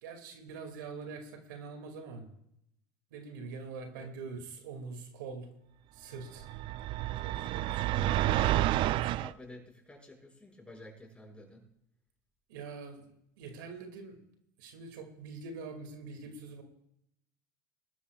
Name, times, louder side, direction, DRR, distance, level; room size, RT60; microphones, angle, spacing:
voice 1, 0.0-2.3 3.1-5.5 5.9-6.5 7.2-7.7 12.5-13.1 13.4-14.2 14.6-16.6, right 4 dB, 85° right, 5 dB, 2.4 m, -44 dB
sound 1, 6.4-9.3, right 14 dB, 55° right, 0.4 m, -29 dB
voice 2, 7.7-11.6, left 2 dB, 10° left, 0 dB, 6.1 m, -51 dB
21.0 x 13.0 x 2.4 m, 0.77 s
supercardioid pair, 95°, 10 cm